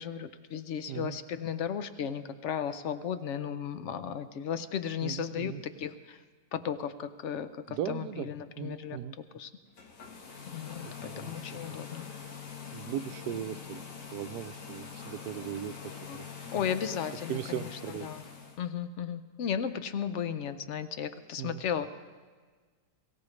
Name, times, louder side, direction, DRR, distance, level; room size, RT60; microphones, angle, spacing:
voice 1, 0.0-5.5 5.8-6.2 6.5-9.0 9.3-9.5 10.5-12.0 16.1-16.2 16.5-17.6 18.0-18.2 18.6-21.9, left 8 dB, 65° left, 12 dB, 0.7 m, -35 dB
voice 2, 5.0-5.6 7.7-8.3 8.6-9.2 10.8-11.6 12.7-15.8 16.1-16.3 16.5-16.7 17.3-18.1 21.4-21.6, right 11 dB, 75° right, 11 dB, 1.1 m, -38 dB
sound 1, 9.7-18.6, left 6 dB, 80° left, 2.0 m, -44 dB
22.5 x 16.0 x 3.2 m, 1.5 s
omnidirectional pair, 1.8 m